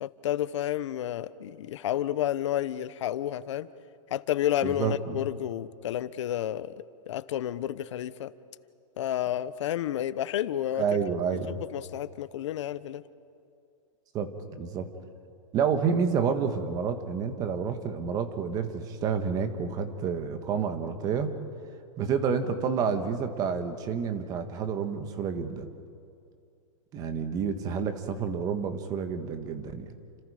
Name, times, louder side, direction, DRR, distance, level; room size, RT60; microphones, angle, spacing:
voice 1, 0.0-3.7 4.1-6.7 7.1-8.3 9.0-10.8 11.5-13.0, left 12 dB, 60° left, 15 dB, 0.9 m, -30 dB
voice 2, 4.6-5.2 10.8-11.6 14.1-14.3 14.6-14.9 15.5-21.3 22.0-25.6 26.9-29.9, right 6 dB, 20° right, 8 dB, 1.5 m, -29 dB
29.5 x 26.0 x 5.0 m, 2.5 s
supercardioid pair, 165°, 17 cm